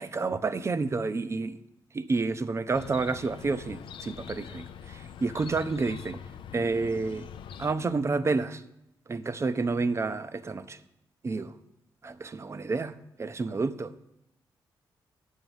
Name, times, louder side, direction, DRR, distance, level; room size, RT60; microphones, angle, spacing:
voice 1, 0.0-1.6 1.9-6.2 6.5-7.3 7.6-8.6 9.1-10.8 11.2-11.6 12.0-13.9, right 3 dB, 35° right, 0.6 m, -30 dB
Chirp tweet, 2.7-7.7, left 8 dB, 75° left, 0.5 m, -44 dB
8.9 x 6.5 x 7.2 m
cardioid pair, 75°, 9 cm